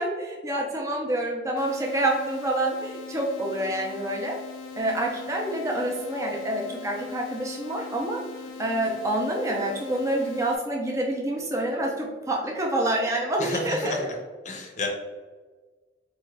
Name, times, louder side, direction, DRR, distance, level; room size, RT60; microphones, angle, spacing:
voice 1, 0.0-4.4 4.8-8.2 8.6-14.0, right 1 dB, 15° right, 0 dB, 0.4 m, -27 dB
sound 1, 1.6-10.6, left 6 dB, 90° left, 0.4 m, -41 dB
voice 2, 13.4-14.2 14.4-14.9, left 3 dB, 40° left, 1 dB, 0.6 m, -31 dB
4.2 x 2.3 x 3.2 m, 1.4 s
head